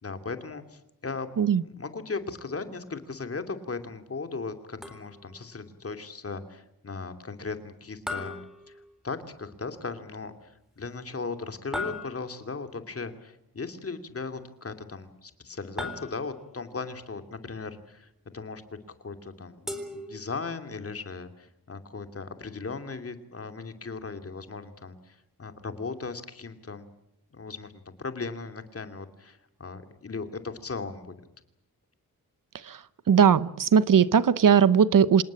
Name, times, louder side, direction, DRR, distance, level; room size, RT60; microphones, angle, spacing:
voice 1, 0.0-1.3 1.6-8.8 9.0-18.6 19.0-26.9 27.3-31.2, left 4 dB, 40° left, 8 dB, 2.7 m, -37 dB
sound 1, 4.8-5.4 8.1-9.3 11.7-12.6 15.8-16.6 19.7-20.7, left 2 dB, ahead, 3.9 m, -38 dB
voice 2, 33.1-35.2, right 7 dB, 65° right, 16 dB, 0.9 m, -19 dB
27.0 x 19.0 x 8.8 m, 0.84 s
wide cardioid pair, 135°, 36 cm